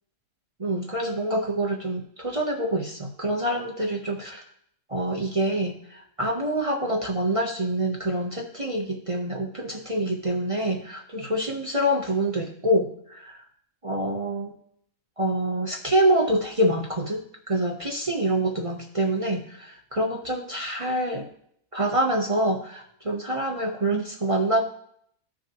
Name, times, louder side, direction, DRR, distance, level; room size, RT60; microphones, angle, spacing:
voice 1, 0.6-4.4 4.9-13.4 13.8-14.5 15.2-21.3 21.7-24.6, right 1 dB, 30° right, 0 dB, 0.8 m, -26 dB
15.0 x 6.1 x 3.0 m, 0.67 s
omnidirectional pair, 1.5 m